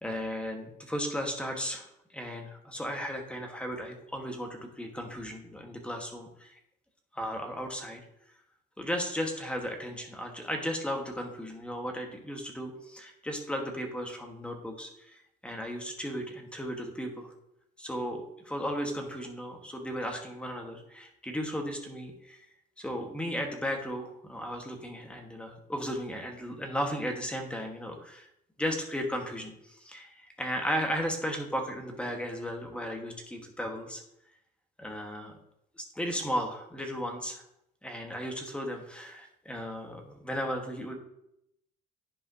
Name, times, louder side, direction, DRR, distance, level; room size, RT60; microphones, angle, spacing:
voice 1, 0.0-1.9 2.1-6.6 7.1-8.0 8.8-17.3 17.8-22.4 22.8-28.3 28.6-34.0 34.8-35.4 35.8-37.4 37.8-40.9, equal, 5° left, 3 dB, 1.4 m, -35 dB
11.0 x 4.9 x 2.7 m, 0.77 s
cardioid pair, 110°, 17 cm